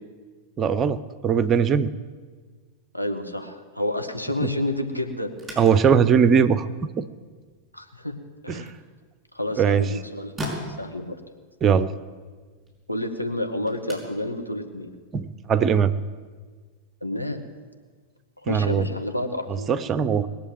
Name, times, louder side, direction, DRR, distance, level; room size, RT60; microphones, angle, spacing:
voice 1, 0.6-1.9 5.6-6.7 7.0-7.1 8.5-8.6 9.6-9.9 11.6-11.9 15.1-15.9 18.5-18.9 19.7-20.3, right 7 dB, 25° right, 14 dB, 0.7 m, -20 dB
voice 2, 2.9-5.3 7.7-8.2 8.4-8.7 9.3-10.3 10.8-11.2 12.9-14.9 17.0-17.4 18.4-19.7, left 1 dB, 90° left, 3 dB, 1.7 m, -29 dB
sound 1, 5.3-15.8, equal, 10° right, 5.7 m, -43 dB
21.0 x 7.5 x 9.3 m, 1.5 s
figure-of-eight pair, 90°, 0 cm